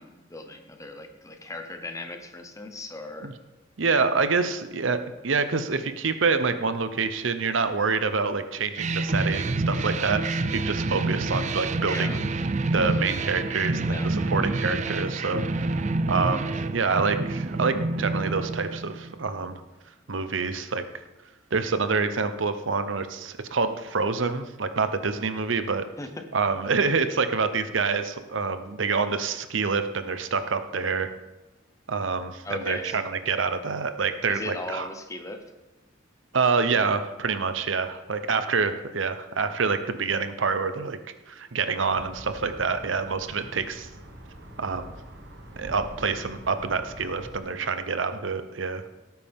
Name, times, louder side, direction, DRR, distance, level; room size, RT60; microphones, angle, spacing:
voice 1, 0.0-3.3 11.9-12.2 13.9-14.2 26.0-26.3 32.4-33.0 34.3-35.5, left 2 dB, 15° left, 6 dB, 1.0 m, -37 dB
voice 2, 3.8-12.2 12.6-15.4 15.8-19.6 20.1-20.8 21.5-25.9 26.3-31.1 31.9-34.9 36.3-41.0 41.3-43.9 44.6-44.9 45.6-48.8, right 4 dB, 80° right, 10 dB, 0.8 m, -27 dB
sound 1, 8.8-19.3, right 2 dB, 40° right, 0.5 m, -28 dB
sound 2, 41.9-47.4, right 1 dB, 60° right, 1.5 m, -44 dB
17.5 x 9.1 x 3.6 m, 1.1 s
head